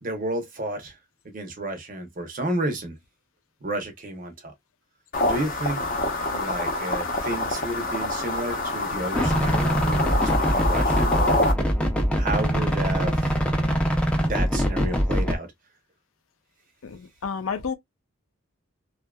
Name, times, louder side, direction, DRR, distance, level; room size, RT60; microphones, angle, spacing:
voice 1, 0.0-1.0 1.2-3.0 3.6-4.5 5.3-5.8 6.2-11.4 12.2-13.4 14.2-15.5, right 1 dB, 40° right, 0.7 m, -31 dB
sound 1, 5.1-11.5, left 2 dB, 45° left, 0.7 m, -26 dB
sound 2, 9.1-15.4, equal, 5° left, 0.5 m, -23 dB
voice 2, 16.8-17.7, left 6 dB, 85° left, 0.6 m, -30 dB
2.7 x 2.4 x 2.2 m
head